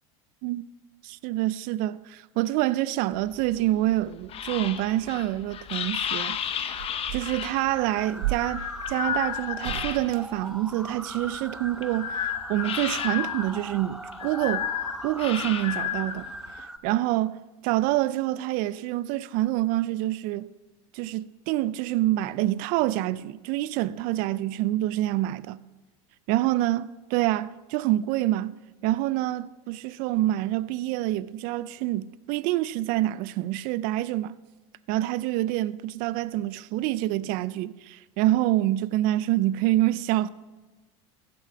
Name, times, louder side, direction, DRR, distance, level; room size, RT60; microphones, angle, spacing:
voice 1, 1.0-6.4 7.1-14.7 15.0-16.3 16.8-17.4 17.6-20.5 20.9-25.6 26.3-28.5 28.8-34.4 34.9-40.3, right 15 dB, 55° right, 0.4 m, -26 dB
sound 1, 3.1-10.4 10.8-16.6, left 9 dB, 35° left, 0.8 m, -32 dB
sound 2, 5.1-11.2 12.6-13.4 13.7-13.8, right 13 dB, 80° right, 0.8 m, -38 dB
sound 3, 7.6-16.8, right 1 dB, 5° right, 0.6 m, -40 dB
15.0 x 7.6 x 4.8 m
supercardioid pair, 110°, 17 cm